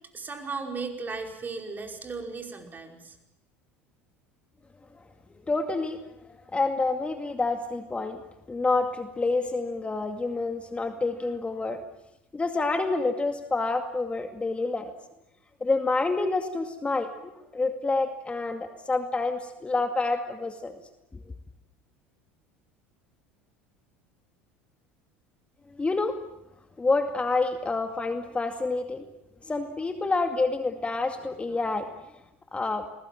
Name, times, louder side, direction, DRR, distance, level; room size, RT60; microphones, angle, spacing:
voice 1, 0.1-3.2, right 4 dB, 25° right, 3 dB, 5.4 m, -36 dB
voice 2, 5.5-6.0 6.5-8.2 8.5-11.8 12.3-14.9 15.6-17.1 17.5-20.7 25.7-26.2 26.8-29.0 29.5-31.9 32.5-32.9, left 3 dB, 20° left, 6 dB, 2.3 m, -28 dB
29.5 x 21.0 x 7.6 m, 0.89 s
hypercardioid pair, 75°, 7 cm